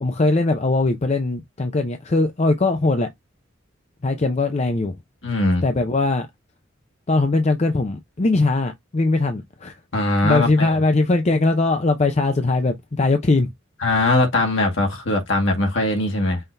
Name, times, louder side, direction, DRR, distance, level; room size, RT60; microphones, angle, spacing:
voice 1, 0.0-3.1 4.0-4.9 5.6-6.3 7.1-9.8 10.2-13.5, left 2 dB, 35° left, 0.5 m, -20 dB
voice 2, 5.2-5.6 9.9-10.8 13.8-16.4, left 2 dB, 65° left, 1.8 m, -20 dB
5.6 x 2.8 x 3.3 m
head